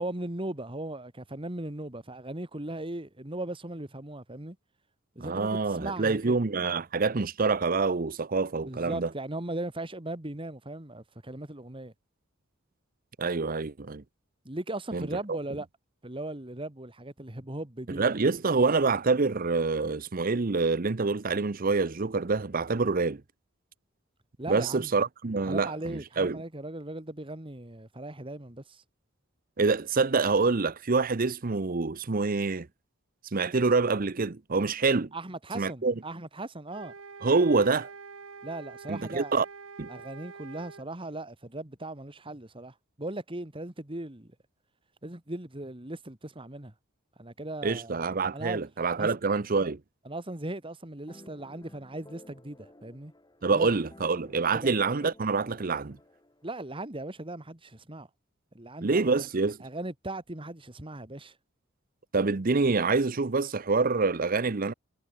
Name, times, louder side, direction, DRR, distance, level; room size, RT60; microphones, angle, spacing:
voice 1, 0.0-4.6 5.2-6.3 8.7-11.9 14.5-15.7 16.0-18.1 24.4-24.9 25.5-28.8 35.1-36.9 38.4-39.3 39.9-44.3 45.0-46.7 47.2-48.0 48.3-48.6 49.0-49.1 50.1-53.1 53.5-53.8 54.5-54.8 56.4-58.1 58.5-59.2 59.6-61.3, right 2 dB, 25° right, 2.1 m, -38 dB
voice 2, 5.2-9.1 13.2-14.0 14.9-15.1 17.9-23.2 24.5-26.4 29.6-32.7 33.3-35.1 35.5-35.9 37.2-37.9 38.9-39.5 39.8-39.9 47.6-49.8 53.4-56.0 58.8-59.6 62.1-64.7, right 4 dB, 45° right, 0.7 m, -26 dB
sound 1, 36.7-40.9, right 4 dB, 80° right, 1.4 m, -46 dB
sound 2, 51.1-56.7, left 1 dB, 20° left, 2.8 m, -55 dB
head